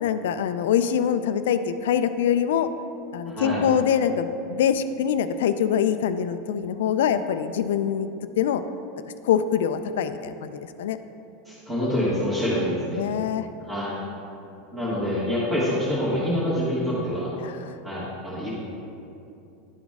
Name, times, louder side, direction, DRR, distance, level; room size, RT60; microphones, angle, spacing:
voice 1, 0.0-2.7 3.1-8.1 8.4-8.6 9.2-11.0 13.0-13.5 17.4-17.7, left 8 dB, 90° left, 10 dB, 0.4 m, -24 dB
voice 2, 3.3-3.6 11.4-13.0 13.7-14.0 14.7-17.3 17.8-18.5, equal, 10° right, -10 dB, 1.4 m, -26 dB
11.5 x 3.9 x 3.5 m, 2.7 s
supercardioid pair, 160°, 0 cm